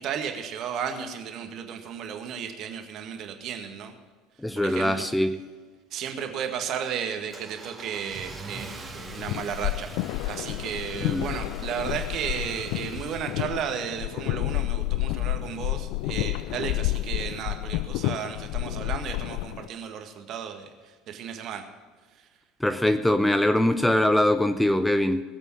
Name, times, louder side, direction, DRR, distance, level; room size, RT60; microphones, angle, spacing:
voice 1, 0.0-3.9 4.5-5.0 5.9-9.9 10.2-20.7 21.1-21.6, right 8 dB, 45° right, 5 dB, 1.8 m, -34 dB
voice 2, 4.4-5.3 11.0-11.3 22.6-25.2, left 1 dB, 5° left, 9 dB, 0.8 m, -22 dB
Car / Engine starting, 6.1-14.2, right 3 dB, 20° right, 2.1 m, -44 dB
sound 1, 8.9-19.7, left 17 dB, 55° left, 0.3 m, -30 dB
19.5 x 8.2 x 5.9 m, 1.4 s
figure-of-eight pair, 65°, 0 cm